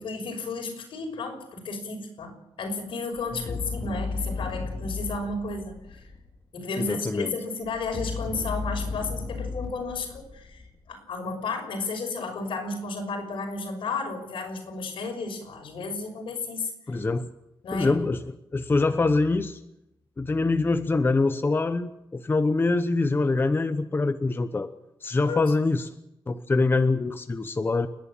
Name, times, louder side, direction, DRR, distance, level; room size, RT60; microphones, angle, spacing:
voice 1, 0.0-6.0 6.5-10.6 10.9-16.7 17.6-17.9 25.3-25.5, left 3 dB, 80° left, 3 dB, 6.1 m, -33 dB
sound 1, 3.1-6.4 7.6-10.9, left 4 dB, 40° left, 2.8 m, -34 dB
voice 2, 6.8-7.3 16.9-17.3 17.7-18.2 18.5-19.6 20.2-24.7 25.0-25.9 26.3-27.9, left 3 dB, 25° left, 9 dB, 0.9 m, -24 dB
30.0 x 11.0 x 9.0 m, 0.86 s
wide cardioid pair, 140°, 9 cm